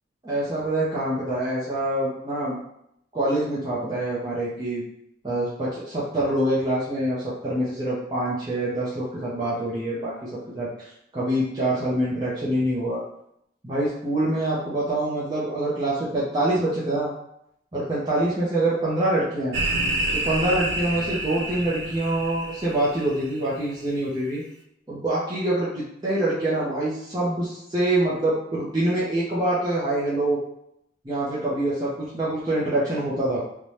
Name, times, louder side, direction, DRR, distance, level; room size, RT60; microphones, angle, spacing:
voice 1, 0.2-2.6 3.1-4.8 5.2-10.3 10.5-13.0 13.6-17.1 17.7-19.6 20.1-24.4 24.9-30.4 31.0-33.4, right 1 dB, 20° right, -9 dB, 0.5 m, -25 dB
sound 1, 19.5-23.4, right 1 dB, 80° right, 0.4 m, -28 dB
2.6 x 2.1 x 3.1 m, 0.76 s
head